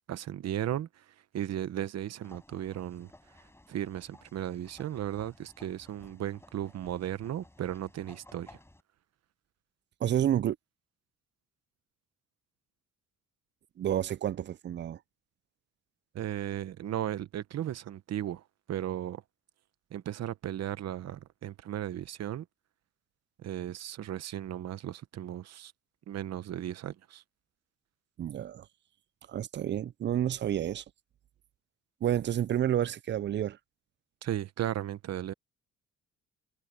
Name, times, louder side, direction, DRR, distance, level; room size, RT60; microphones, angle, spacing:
voice 1, 0.1-3.1 3.7-8.6 16.1-19.2 19.9-22.5 23.4-25.7 26.1-27.2 34.2-35.3, right 11 dB, 60° right, 0.9 m, -36 dB
sound 1, 2.2-8.8, left 1 dB, 10° left, 5.6 m, -56 dB
voice 2, 10.0-10.6 13.8-15.0 28.2-28.7 29.3-30.8 32.0-33.6, right 11 dB, 40° right, 0.4 m, -29 dB
cardioid pair, 90°, 30 cm